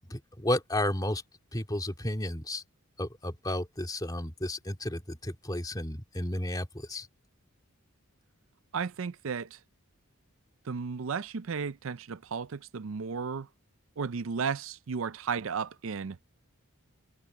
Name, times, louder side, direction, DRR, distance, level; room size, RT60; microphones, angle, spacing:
voice 1, 0.1-1.2 1.5-2.6 3.0-7.1, left 1 dB, 15° left, 2.6 m, -32 dB
voice 2, 8.7-9.6 10.7-13.5 14.0-16.2, right 5 dB, 65° right, 0.5 m, -34 dB
head